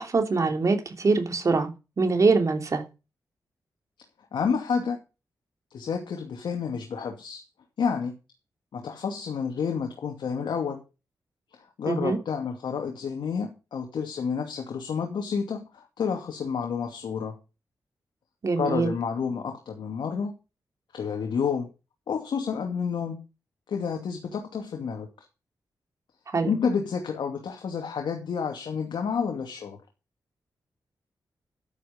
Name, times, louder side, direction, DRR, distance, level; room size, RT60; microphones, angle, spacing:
voice 1, 0.0-1.7 2.0-2.8 11.9-12.2 18.4-18.9 26.3-26.5, right 4 dB, 45° right, 3.0 m, -23 dB
voice 2, 4.3-5.0 5.7-7.4 7.8-8.2 8.7-10.8 11.5-17.4 18.6-20.4 20.9-21.7 22.1-23.2 23.7-25.1 26.4-29.8, left 6 dB, 85° left, 2.5 m, -30 dB
11.0 x 9.2 x 5.4 m
wide cardioid pair, 115°, 8 cm